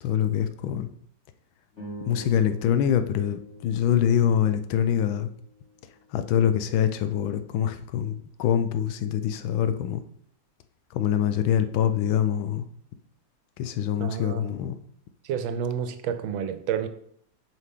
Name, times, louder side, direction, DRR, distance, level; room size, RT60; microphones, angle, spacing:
voice 1, 0.0-0.9 2.1-5.3 6.1-10.0 10.9-12.6 13.6-14.8, left 9 dB, 80° left, 10 dB, 1.4 m, -24 dB
sound 1, 1.7-6.2, equal, 35° left, 2.4 m, -45 dB
voice 2, 14.0-14.5 15.2-16.9, right 8 dB, 85° right, 10 dB, 1.5 m, -30 dB
7.8 x 5.6 x 3.6 m, 0.66 s
omnidirectional pair, 2.2 m